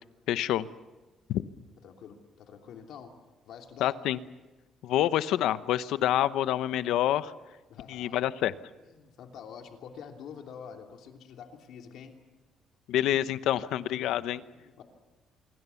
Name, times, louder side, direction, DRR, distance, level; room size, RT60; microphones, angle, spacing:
voice 1, 0.3-0.7 1.3-1.4 3.8-4.2 4.8-7.3 7.9-8.5 12.9-14.4, left 12 dB, 80° left, 14 dB, 0.9 m, -27 dB
voice 2, 1.8-3.1 3.5-4.0 7.7-8.2 8.8-12.2 14.0-14.8, left 7 dB, 65° left, 3 dB, 3.0 m, -47 dB
26.0 x 23.5 x 7.1 m, 1.2 s
cardioid pair, 175°, 0 cm